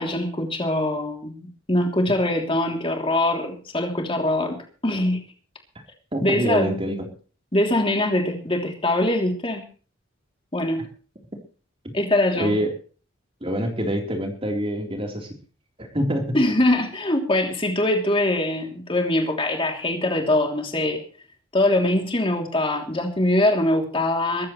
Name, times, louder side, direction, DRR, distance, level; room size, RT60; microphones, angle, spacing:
voice 1, 0.0-4.6 4.8-5.2 6.2-6.7 7.5-9.6 10.5-10.9 11.9-12.5 16.3-21.0 21.5-24.5, left 1 dB, 25° left, 2 dB, 3.1 m, -22 dB
voice 2, 6.1-7.1 12.4-12.7 13.4-15.3 15.8-16.4, equal, 25° right, 2 dB, 3.9 m, -25 dB
22.5 x 14.5 x 3.2 m, 0.38 s
head